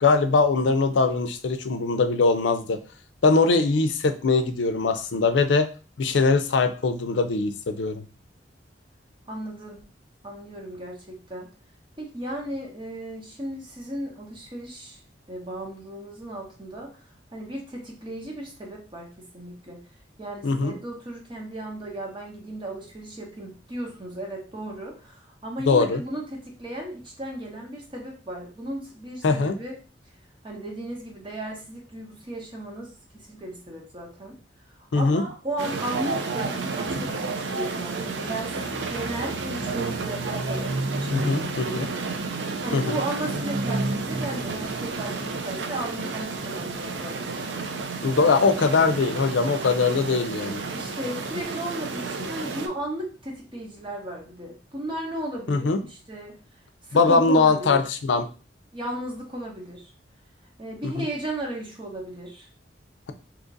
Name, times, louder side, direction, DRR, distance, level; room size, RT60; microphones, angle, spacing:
voice 1, 0.0-2.8 3.2-5.7 6.0-8.0 20.4-20.7 25.7-26.0 29.2-29.6 34.9-35.2 41.1-41.9 42.7-43.0 48.0-50.6 55.5-55.8 56.9-58.3 60.8-61.1, left 4 dB, 85° left, 9 dB, 0.5 m, -21 dB
voice 2, 9.3-9.8 10.2-11.5 12.0-15.0 15.3-16.9 17.3-19.1 19.3-19.8 20.2-29.8 30.4-34.4 34.9-41.9 42.6-47.4 50.7-56.4 56.9-57.8 58.7-59.8 60.6-62.5, right 1 dB, 25° right, -1 dB, 0.9 m, -35 dB
sound 1, 35.6-52.7, right 3 dB, 75° right, 0.5 m, -30 dB
2.9 x 2.5 x 3.9 m, 0.36 s
head